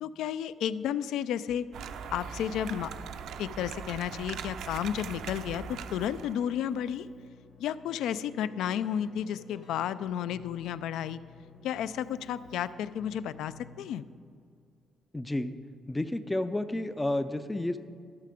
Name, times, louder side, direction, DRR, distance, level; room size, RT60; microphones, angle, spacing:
voice 1, 0.0-1.7 2.1-2.9 3.4-7.1 7.6-11.2 11.6-14.0, left 9 dB, 90° left, 15 dB, 0.3 m, -32 dB
sound 1, 1.7-6.7, right 7 dB, 65° right, 0.5 m, -41 dB
Keyboard (musical), 5.5-14.2, left 4 dB, 55° left, 1.2 m, -54 dB
voice 2, 15.1-15.6 15.9-17.8, left 1 dB, 10° left, 11 dB, 0.3 m, -31 dB
12.5 x 6.7 x 5.1 m, 2.2 s
cardioid pair, 165°, 0 cm